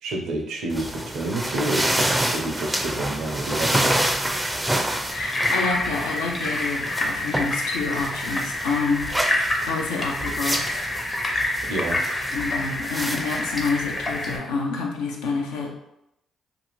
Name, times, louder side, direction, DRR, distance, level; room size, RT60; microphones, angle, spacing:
voice 1, 0.0-3.8 11.7-12.0, right 2 dB, 75° right, 0 dB, 0.5 m, -29 dB
sound 1, 0.7-14.4, right 1 dB, 10° right, 0.4 m, -28 dB
voice 2, 5.1-9.1 9.6-10.8 12.3-15.7, left 4 dB, 85° left, 0 dB, 0.5 m, -28 dB
sound 2, 5.1-14.4, left 1 dB, 35° left, 0.7 m, -27 dB
2.5 x 2.4 x 3.0 m, 0.83 s
hypercardioid pair, 50°, 0 cm